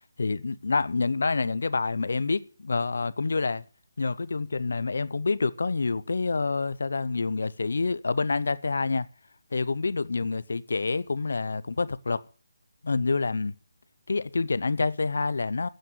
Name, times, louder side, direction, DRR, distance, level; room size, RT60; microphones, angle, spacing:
voice 1, 0.2-3.6 4.0-9.1 9.5-12.2 12.8-13.5 14.1-15.7, left 4 dB, 70° left, 0.7 m, -27 dB
9.1 x 8.5 x 8.9 m
figure-of-eight pair, 160°, 0 cm